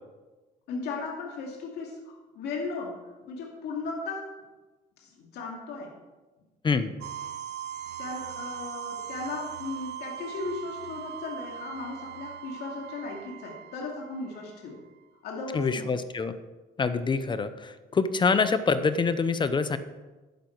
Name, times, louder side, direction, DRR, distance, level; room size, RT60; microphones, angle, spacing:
voice 1, 0.7-4.3 5.0-6.0 8.0-14.8 15.2-15.9, left 3 dB, 75° left, -1 dB, 2.4 m, -36 dB
sound 1, 7.0-14.8, right 10 dB, 85° right, 0.6 m, -40 dB
voice 2, 15.5-16.3 16.8-19.8, left 4 dB, 30° left, 12 dB, 0.8 m, -25 dB
11.5 x 10.5 x 4.7 m, 1.2 s
cardioid pair, 110°, 17 cm